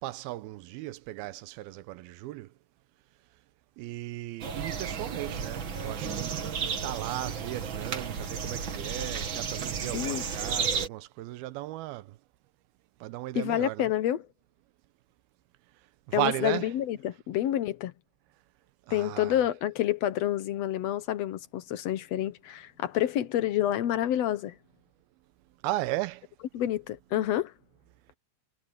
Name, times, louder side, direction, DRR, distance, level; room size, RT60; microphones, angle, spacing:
voice 1, 0.0-2.5 3.8-12.2 13.0-13.9 16.1-16.7 18.9-19.4 25.6-26.3, right 16 dB, 90° right, 2.6 m, -36 dB
sound 1, 4.4-10.9, right 6 dB, 45° right, 1.7 m, -33 dB
voice 2, 9.9-10.2 13.3-14.2 16.1-17.9 18.9-24.6 26.5-27.5, left 12 dB, 75° left, 1.5 m, -28 dB
omnidirectional pair, 4.3 m